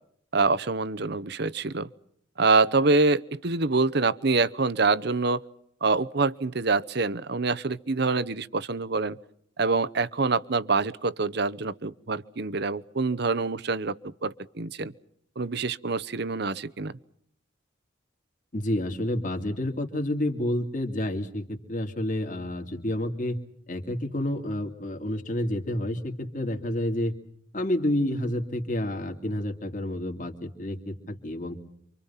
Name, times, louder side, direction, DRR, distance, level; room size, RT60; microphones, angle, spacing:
voice 1, 0.3-1.9 2.4-5.4 5.8-9.2 9.6-14.9 15.4-16.9, right 3 dB, 60° right, 17 dB, 0.9 m, -25 dB
voice 2, 18.5-23.4 23.7-27.1 27.5-31.6, left 1 dB, 45° left, 4 dB, 2.6 m, -29 dB
28.5 x 25.5 x 5.8 m, 0.69 s
head